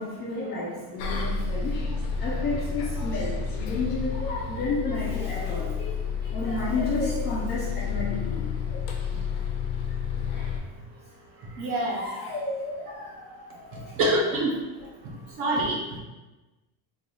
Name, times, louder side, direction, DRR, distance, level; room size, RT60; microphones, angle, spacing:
voice 1, 0.0-1.8 2.2-5.9 6.2-8.8 10.3-10.6 11.6-14.0, left 2 dB, 25° left, -6 dB, 0.3 m, -32 dB
Bus, 1.0-10.6, left 6 dB, 75° left, 0.7 m, -30 dB
voice 2, 11.6-12.0 14.0-14.5 15.4-15.8, right 1 dB, 35° right, -1 dB, 0.5 m, -24 dB
3.7 x 2.3 x 3.0 m, 1.1 s
cardioid pair, 170°, 41 cm